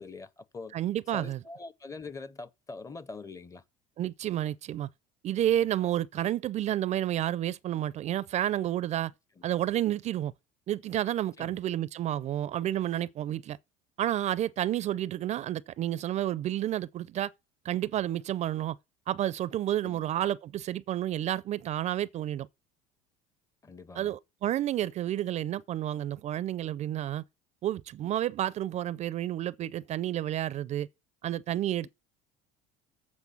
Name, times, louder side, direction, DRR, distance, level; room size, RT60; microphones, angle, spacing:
voice 1, 0.0-0.7 1.1-3.6 11.4-11.6 19.8-20.0 23.6-24.1 31.8-31.9, left 3 dB, 20° left, 0.6 m, -43 dB
voice 2, 0.7-1.4 4.0-4.9 5.2-9.1 9.4-10.3 10.7-13.6 14.0-17.3 17.6-18.8 19.1-22.5 24.0-27.2 27.6-30.9 31.2-31.9, right 12 dB, 45° right, 0.4 m, -30 dB
8.3 x 4.5 x 7.0 m
supercardioid pair, 100°, 17 cm